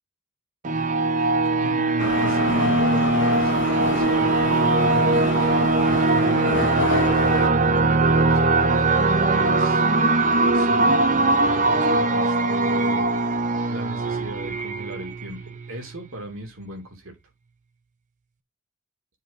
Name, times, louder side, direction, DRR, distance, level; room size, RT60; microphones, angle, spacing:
sound 1, 0.6-16.0, right 2 dB, 40° right, 0.8 m, -21 dB
voice 1, 1.6-8.5 9.3-9.8 10.5-13.1 13.7-17.2, right 1 dB, 80° right, 2.8 m, -37 dB
Subway metro underground, 2.0-7.5, left 4 dB, 60° left, 0.9 m, -29 dB
7.4 x 4.9 x 4.1 m
head